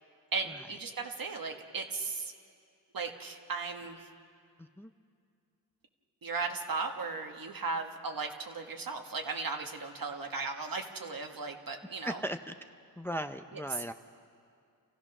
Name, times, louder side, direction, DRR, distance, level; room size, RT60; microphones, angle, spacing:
voice 1, 0.3-2.3 2.9-4.1 6.2-12.2 13.5-13.6, right 4 dB, 60° right, 4 dB, 1.6 m, -36 dB
voice 2, 4.6-4.9 12.0-12.5 13.0-13.9, equal, 5° left, 8 dB, 0.5 m, -37 dB
29.0 x 15.5 x 6.1 m, 2.3 s
wide cardioid pair, 90°, 38 cm